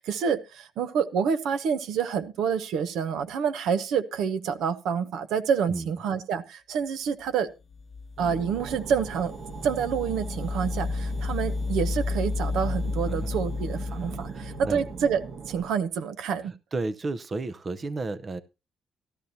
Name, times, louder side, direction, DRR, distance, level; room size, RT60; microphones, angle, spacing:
voice 1, 0.0-7.5 8.2-9.3 9.6-16.5, right 7 dB, 80° right, 11 dB, 0.8 m, -28 dB
sound 1, 7.7-15.3, left 3 dB, 40° left, 0.9 m, -32 dB
sound 2, 8.2-15.7, right 5 dB, 60° right, 1.3 m, -40 dB
voice 2, 14.3-14.8 16.7-18.4, right 3 dB, 35° right, 13 dB, 0.6 m, -32 dB
14.0 x 12.0 x 2.7 m, 0.27 s
cardioid pair, 90°, 0 cm